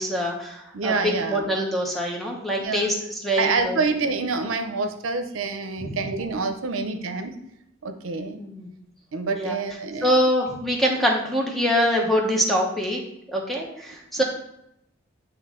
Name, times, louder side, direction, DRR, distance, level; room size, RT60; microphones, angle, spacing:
voice 1, 0.0-2.9 3.2-3.8 5.8-6.0 8.4-8.7 9.3-9.6 10.0-13.0 13.3-14.2, equal, ahead, -1 dB, 1.0 m, -24 dB
voice 2, 0.7-1.5 2.6-2.9 3.4-7.4 7.8-8.4 9.1-10.1 14.2-14.3, right 4 dB, 80° right, 7 dB, 0.6 m, -27 dB
8.8 x 3.1 x 3.7 m, 0.79 s
head